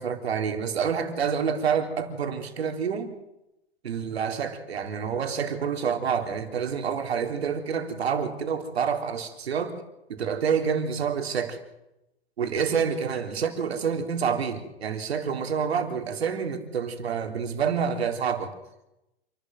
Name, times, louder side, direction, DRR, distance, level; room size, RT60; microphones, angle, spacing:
voice 1, 0.0-3.2 3.8-9.8 10.1-11.6 12.4-18.5, right 6 dB, 80° right, 6 dB, 3.7 m, -28 dB
28.0 x 12.5 x 9.4 m, 0.91 s
hypercardioid pair, 110°, 31 cm